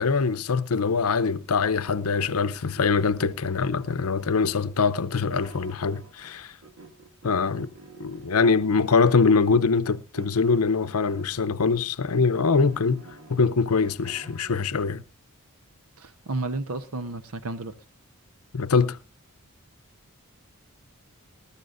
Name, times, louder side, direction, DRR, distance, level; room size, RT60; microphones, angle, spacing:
voice 1, 0.0-6.5 7.2-7.7 8.0-13.0 13.3-15.0 18.5-19.0, left 4 dB, 80° left, 0.7 m, -23 dB
sound 1, 3.5-6.4 6.6-9.3 10.1-11.7 12.2-14.7, right 2 dB, 65° right, 2.0 m, -50 dB
voice 2, 16.0-17.7, right 3 dB, 80° right, 0.9 m, -32 dB
20.5 x 13.0 x 2.5 m
head